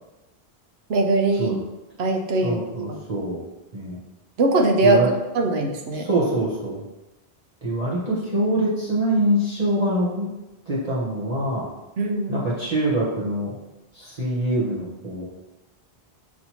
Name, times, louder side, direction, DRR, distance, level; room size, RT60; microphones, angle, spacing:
voice 1, 0.9-1.6 2.0-2.6 2.9-3.0 4.4-5.0 5.3-6.1 12.0-12.3, right 2 dB, 80° right, 3 dB, 0.9 m, -21 dB
voice 2, 2.4-3.4 3.7-4.0 4.8-5.1 6.0-6.8 7.6-10.3 10.7-11.7 12.3-13.6 13.9-15.3, right 1 dB, 40° right, -7 dB, 0.9 m, -24 dB
6.2 x 2.7 x 2.9 m, 1.0 s
omnidirectional pair, 1.1 m